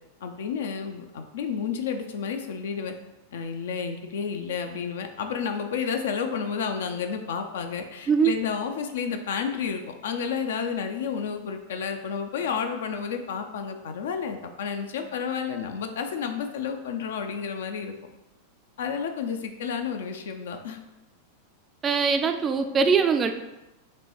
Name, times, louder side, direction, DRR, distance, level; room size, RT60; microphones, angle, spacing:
voice 1, 0.2-2.9 3.3-17.9 18.8-20.8, left 6 dB, 60° left, 6 dB, 0.4 m, -31 dB
voice 2, 21.8-23.3, right 5 dB, 20° right, 7 dB, 0.3 m, -22 dB
5.8 x 2.2 x 2.9 m, 1.0 s
figure-of-eight pair, 90°, 0 cm